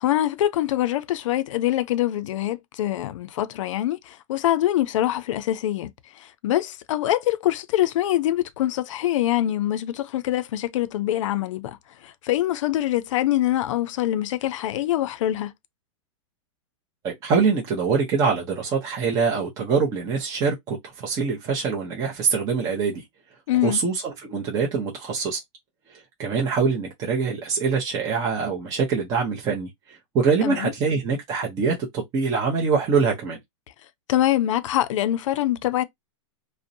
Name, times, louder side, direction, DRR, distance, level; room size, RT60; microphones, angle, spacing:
voice 1, 0.0-5.9 6.2-11.8 12.0-15.5 23.5-23.8 30.4-30.7 34.1-35.8, left 13 dB, 75° left, 0.4 m, -24 dB
voice 2, 17.0-23.0 23.6-25.4 25.9-33.4, right 5 dB, 20° right, 0.6 m, -24 dB
2.6 x 2.0 x 2.6 m
supercardioid pair, 170°, 16 cm